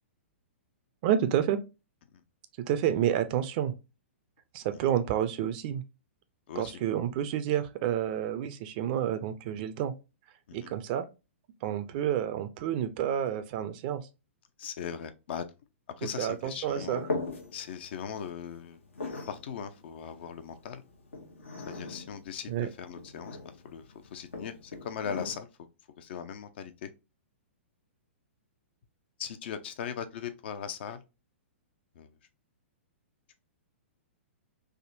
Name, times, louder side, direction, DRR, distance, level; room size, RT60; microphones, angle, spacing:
voice 1, 1.0-1.6 2.6-3.7 4.5-5.8 6.6-9.9 10.5-11.0 11.6-14.0 16.0-17.2 22.5-22.7, right 10 dB, 45° right, 0.5 m, -29 dB
voice 2, 6.5-6.8 10.5-10.7 14.6-15.5 16.0-17.0 17.5-18.8 19.3-20.8 21.7-23.8 24.1-25.5 26.0-26.9 29.2-31.0 31.9-32.2, left 8 dB, 60° left, 0.6 m, -39 dB
sound 1, 16.3-25.4, left 3 dB, 85° left, 0.9 m, -41 dB
3.5 x 2.1 x 2.6 m
hypercardioid pair, 120°, 7 cm